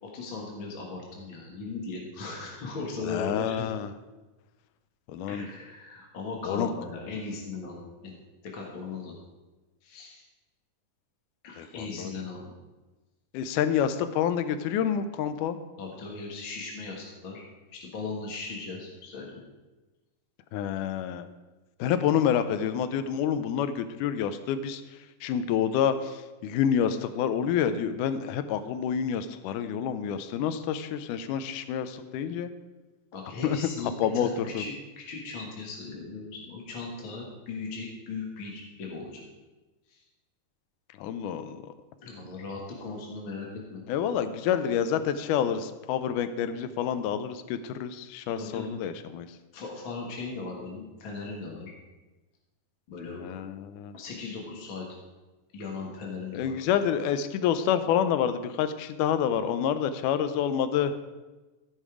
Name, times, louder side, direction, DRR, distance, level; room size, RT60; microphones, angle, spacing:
voice 1, 0.0-3.6 5.3-8.2 8.4-9.1 9.8-10.2 11.4-12.5 15.8-17.4 17.7-19.4 33.1-39.2 39.9-40.0 42.0-43.8 48.3-48.7 49.5-51.7 52.9-53.2 53.9-54.9 55.5-56.6, left 3 dB, 45° left, -1 dB, 1.8 m, -38 dB
voice 2, 3.1-3.9 5.1-5.5 6.4-6.7 11.6-12.1 13.3-15.6 20.5-21.3 21.8-24.8 25.2-32.5 33.4-33.6 34.0-34.6 41.0-41.6 43.9-49.3 53.2-53.9 56.3-60.9, left 8 dB, 80° left, 10 dB, 2.1 m, -28 dB
15.5 x 5.5 x 4.8 m, 1.2 s
omnidirectional pair, 3.8 m